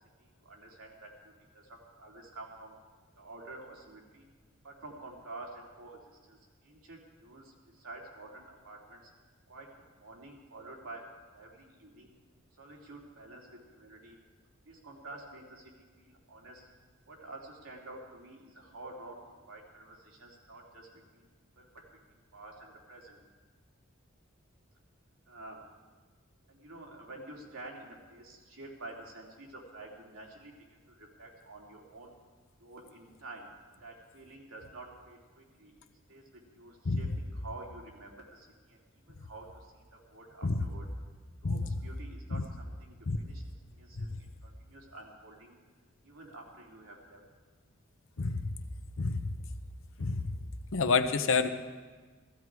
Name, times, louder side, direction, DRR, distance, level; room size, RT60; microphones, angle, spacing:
voice 1, 0.2-2.8 3.2-4.3 4.6-9.0 9.5-12.1 12.6-14.2 14.6-15.7 16.0-16.7 17.1-19.2 19.4-21.3 21.6-23.2 25.3-25.6 26.5-32.1 32.6-33.5 33.8-38.8 39.1-40.9 41.4-43.4 43.7-45.6 46.0-47.2, right 2 dB, 90° right, -2 dB, 3.2 m, -49 dB
voice 2, 49.0-49.3 50.0-50.2 50.7-51.5, left 4 dB, 65° left, 9 dB, 0.9 m, -28 dB
15.5 x 14.5 x 4.8 m, 1.4 s
head